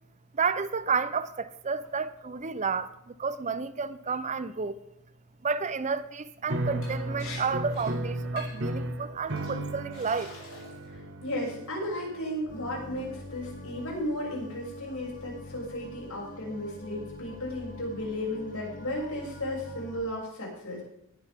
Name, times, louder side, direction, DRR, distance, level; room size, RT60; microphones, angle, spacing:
voice 1, 0.3-4.8 5.4-10.3, right 5 dB, 35° right, 0.6 m, -31 dB
sound 1, 6.5-14.8, right 1 dB, 55° right, 1.4 m, -36 dB
Liquid, 6.8-6.9 7.2-7.4 7.7-7.9 8.4-8.7 9.3-9.5 9.9-10.8 11.2-11.6, left 4 dB, 65° left, 5.4 m, -45 dB
voice 2, 10.9-20.8, left 1 dB, 85° left, 6.7 m, -34 dB
sound 2, 12.5-20.0, left 2 dB, 40° left, 1.9 m, -45 dB
20.0 x 9.7 x 3.6 m
head